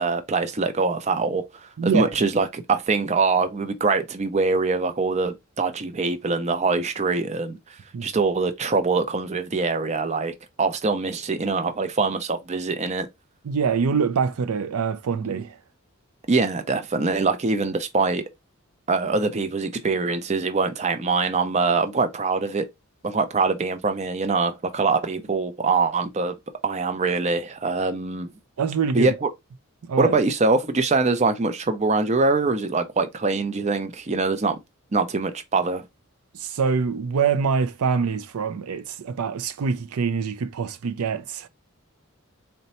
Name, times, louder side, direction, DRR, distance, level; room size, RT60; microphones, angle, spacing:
voice 1, 0.0-7.6 8.0-13.1 16.3-18.2 18.9-22.7 23.0-26.3 26.6-28.3 28.9-29.3 30.0-34.6 34.9-35.8, right 3 dB, 30° right, 0.5 m, -23 dB
voice 2, 1.8-2.1 7.9-8.1 13.4-15.6 28.6-29.1 29.8-30.2 36.3-41.5, right 5 dB, 85° right, 0.5 m, -25 dB
4.0 x 2.2 x 4.1 m
head